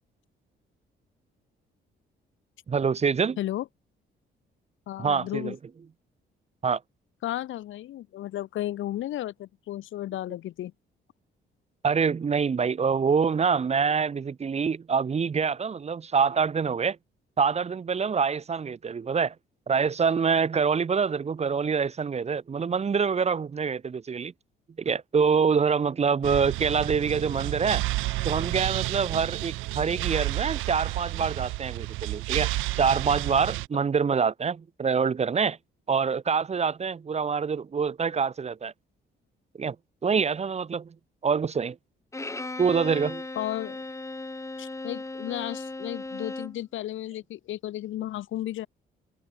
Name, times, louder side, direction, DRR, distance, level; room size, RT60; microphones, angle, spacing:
voice 1, 2.7-3.4 5.0-5.6 6.6-6.8 11.8-17.0 17.4-19.3 19.7-24.3 24.8-27.8 28.2-32.5 32.8-35.6 35.9-38.7 39.6-39.8 40.0-40.9 41.2-41.8 42.6-43.2, right 6 dB, 35° right, 0.9 m, -25 dB
voice 2, 3.4-3.7 4.9-5.6 7.2-10.7 43.3-43.8 44.6-48.7, left 13 dB, 75° left, 1.7 m, -33 dB
sound 1, 26.2-33.7, right 19 dB, 90° right, 0.4 m, -30 dB
Bowed string instrument, 42.1-46.6, left 2 dB, 15° left, 1.9 m, -37 dB
cardioid pair, 90°, 20 cm